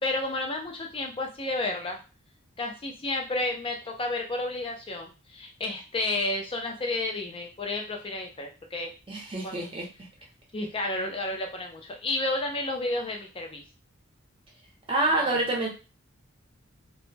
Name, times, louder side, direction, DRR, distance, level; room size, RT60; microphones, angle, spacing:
voice 1, 0.0-2.0 2.6-8.9 9.4-9.7 10.5-13.6 15.2-15.5, left 2 dB, 25° left, 2 dB, 0.5 m, -31 dB
voice 2, 9.1-9.9 14.9-15.7, right 2 dB, 25° right, -1 dB, 0.7 m, -27 dB
2.1 x 2.0 x 3.2 m, 0.32 s
head